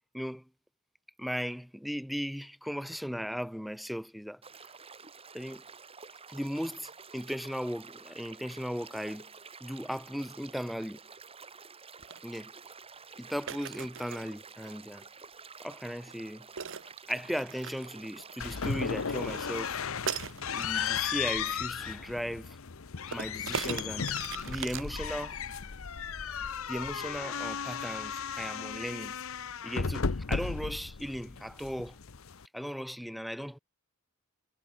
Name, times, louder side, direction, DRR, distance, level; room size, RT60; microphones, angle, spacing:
voice 1, 0.1-0.4 1.2-4.4 5.3-5.6 6.3-9.3 9.6-11.0 12.2-12.5 13.2-15.0 15.6-16.5 17.1-19.8 20.5-22.6 23.0-25.4 26.7-29.2 29.6-32.0 32.5-33.6, equal, ahead, 2.3 m, -37 dB
sound 1, 4.4-19.7, right 5 dB, 25° right, 3.5 m, -50 dB
sound 2, 12.0-12.2 13.5-14.3 16.6-18.6 20.1-20.8 23.1-25.5, right 7 dB, 60° right, 1.2 m, -39 dB
sound 3, 18.4-32.5, left 6 dB, 65° left, 0.8 m, -35 dB
head